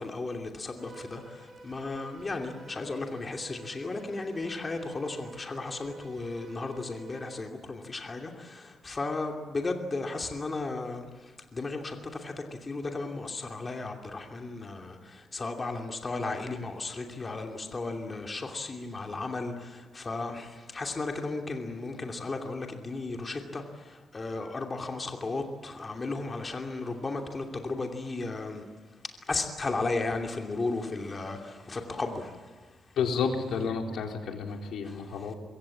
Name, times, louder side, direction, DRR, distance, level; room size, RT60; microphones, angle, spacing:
voice 1, 0.0-28.6 29.3-32.5 34.8-35.3, left 3 dB, 25° left, 3 dB, 2.7 m, -35 dB
Bowed string instrument, 0.8-7.5, right 3 dB, 35° right, 6.5 m, -50 dB
voice 2, 33.0-35.3, left 5 dB, 80° left, 3 dB, 3.9 m, -31 dB
26.0 x 23.0 x 8.6 m, 1.4 s
cardioid pair, 125°, 0 cm